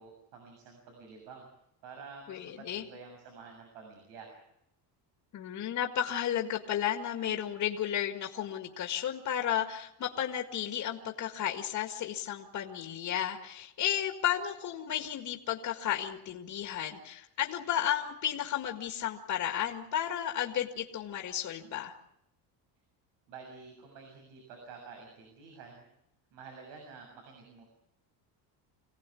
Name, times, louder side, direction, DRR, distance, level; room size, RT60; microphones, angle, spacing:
voice 1, 0.0-1.5 1.8-4.3 23.3-25.9 26.3-27.6, right 5 dB, 85° right, 2 dB, 7.1 m, -49 dB
voice 2, 2.3-2.8 5.3-22.0, left 10 dB, 45° left, 3 dB, 1.9 m, -33 dB
26.0 x 17.5 x 8.5 m, 0.81 s
cardioid pair, 155°, 43 cm